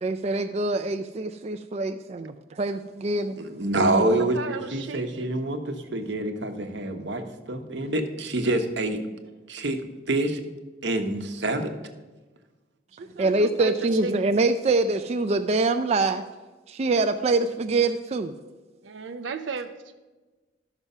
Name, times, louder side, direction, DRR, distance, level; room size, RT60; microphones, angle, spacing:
voice 1, 0.0-3.4 13.2-16.2 16.7-18.3, right 3 dB, 35° right, 8 dB, 0.3 m, -24 dB
voice 2, 3.4-9.0 9.5-9.8 10.1-10.4 10.8-11.7, right 2 dB, 70° right, 6 dB, 1.0 m, -26 dB
voice 3, 4.3-5.4 12.9-14.4 18.8-20.0, right 4 dB, 85° right, 8 dB, 0.5 m, -36 dB
12.5 x 6.0 x 5.4 m, 1.2 s
head